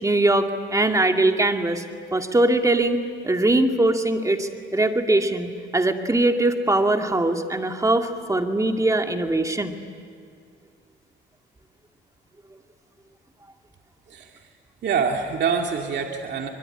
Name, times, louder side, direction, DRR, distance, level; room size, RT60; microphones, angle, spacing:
voice 1, 0.0-1.8 2.1-9.8, right 2 dB, 15° right, 4 dB, 2.2 m, -21 dB
voice 2, 14.1-14.4 14.8-16.5, right 6 dB, 60° right, 2 dB, 2.3 m, -25 dB
25.0 x 22.0 x 10.0 m, 2.3 s
cardioid pair, 90°, 20 cm